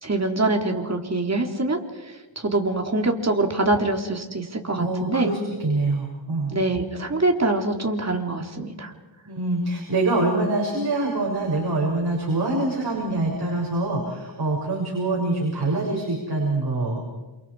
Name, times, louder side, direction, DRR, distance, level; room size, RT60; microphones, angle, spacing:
voice 1, 0.0-1.8 2.4-5.3 6.5-8.9, right 2 dB, 30° right, 3 dB, 3.5 m, -24 dB
voice 2, 4.8-6.6 9.3-17.0, right 2 dB, 50° right, -3 dB, 6.7 m, -25 dB
28.5 x 28.5 x 4.9 m, 1.2 s
wide cardioid pair, 85°, 49 cm